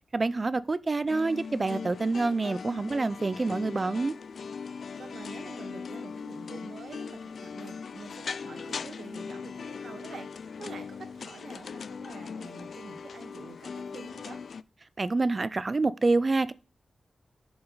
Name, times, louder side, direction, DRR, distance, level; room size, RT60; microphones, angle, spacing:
voice 1, 0.1-4.1 15.0-16.5, right 3 dB, 30° right, 0.4 m, -27 dB
sound 1, 1.1-14.6, left 5 dB, 70° left, 0.3 m, -40 dB
voice 2, 4.8-14.4, right 4 dB, 85° right, 1.5 m, -47 dB
8.4 x 7.1 x 3.9 m
wide cardioid pair, 140°, 0 cm